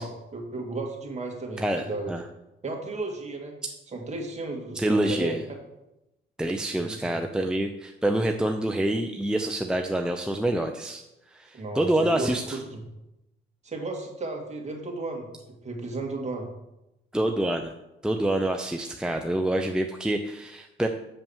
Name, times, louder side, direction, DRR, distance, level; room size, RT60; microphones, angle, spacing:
voice 1, 0.0-2.1 2.6-3.5 3.9-5.4 6.7-7.2 11.5-12.8 13.6-15.3 15.6-16.5, right 2 dB, 35° right, 1 dB, 2.3 m, -34 dB
voice 2, 1.6-2.2 3.6-3.7 4.7-5.4 6.4-11.0 11.3-12.6 17.1-17.7 18.0-20.9, right 1 dB, 5° right, 4 dB, 0.6 m, -27 dB
6.9 x 5.4 x 7.3 m, 0.93 s
cardioid pair, 90°, 20 cm